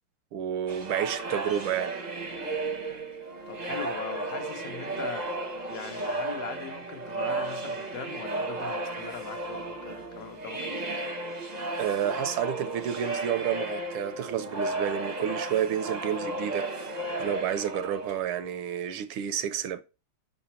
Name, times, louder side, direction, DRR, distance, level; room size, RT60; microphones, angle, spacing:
voice 1, 0.3-2.0 11.8-19.8, right 10 dB, 75° right, 1.3 m, -30 dB
sound 1, 0.7-18.5, right 2 dB, 35° right, 0.7 m, -34 dB
voice 2, 3.5-5.3 5.7-10.8, left 7 dB, 55° left, 1.0 m, -40 dB
5.8 x 4.0 x 4.2 m
omnidirectional pair, 2.4 m